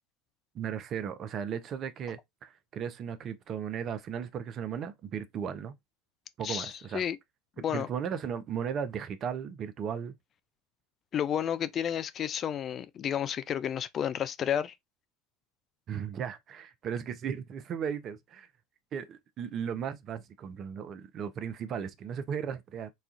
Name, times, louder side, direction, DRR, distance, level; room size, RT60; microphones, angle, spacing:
voice 1, 0.5-5.7 6.4-7.0 7.7-10.1 15.9-18.5 18.9-22.9, right 7 dB, 40° right, 0.6 m, -36 dB
voice 2, 6.4-7.2 7.6-7.9 11.1-14.7, left 9 dB, 40° left, 0.3 m, -31 dB
4.2 x 2.4 x 2.4 m
hypercardioid pair, 90°, 0 cm